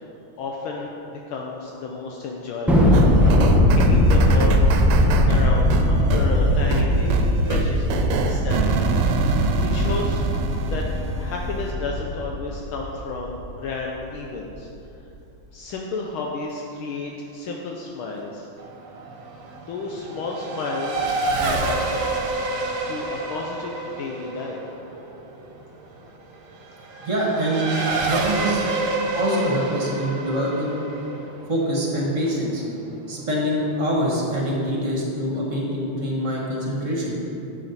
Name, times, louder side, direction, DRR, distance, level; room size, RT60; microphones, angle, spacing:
voice 1, 0.4-2.9 3.7-4.7 5.3-8.9 9.3-10.2 10.6-10.8 11.2-14.7 15.5-18.5 19.7-21.1 21.4-21.8 22.9-24.6, left 3 dB, 75° left, 0 dB, 1.5 m, -32 dB
Thunder, 2.7-13.3, left 1 dB, ahead, 0.6 m, -19 dB
sound 1, 2.9-11.7, right 5 dB, 90° right, 1.7 m, -27 dB
Race car auto racing / Accelerating revving vroom, 18.6-32.7, right 2 dB, 65° right, 1.6 m, -28 dB
voice 2, 27.0-28.6 29.1-30.8 31.5-32.6 33.1-37.1, equal, 35° right, -3 dB, 1.8 m, -24 dB
11.5 x 7.7 x 4.1 m, 2.8 s
omnidirectional pair, 2.4 m